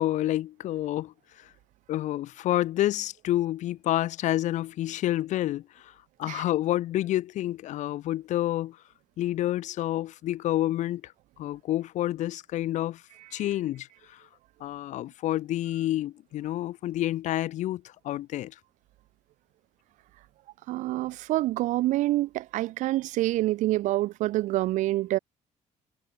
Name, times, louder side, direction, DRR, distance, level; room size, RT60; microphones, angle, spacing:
voice 1, 0.0-1.5 1.9-5.9 6.2-8.8 9.2-11.1 11.4-13.0 13.3-14.3 14.6-18.6, left 14 dB, 75° left, 1.1 m, -29 dB
voice 2, 20.7-25.2, right 16 dB, 80° right, 0.4 m, -27 dB
cardioid pair, 170°, 13 cm